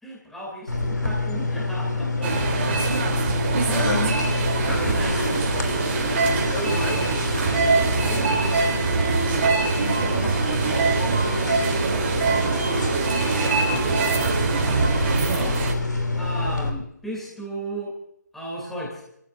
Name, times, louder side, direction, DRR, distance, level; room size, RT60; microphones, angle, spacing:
voice 1, 0.0-2.7 3.6-4.0 4.9-5.1 7.9-8.3 13.2-15.6 16.1-17.9 18.3-19.0, equal, 5° left, -3 dB, 3.0 m, -35 dB
sound 1, 0.7-16.7, left 2 dB, 80° left, 3.2 m, -27 dB
sound 2, 2.2-15.7, right 4 dB, 35° right, 3.4 m, -23 dB
voice 2, 4.6-5.4 6.1-7.4 8.0-8.6 9.2-12.3, left 2 dB, 65° left, 1 dB, 6.1 m, -35 dB
27.0 x 14.5 x 2.6 m, 0.72 s
figure-of-eight pair, 145°, 10 cm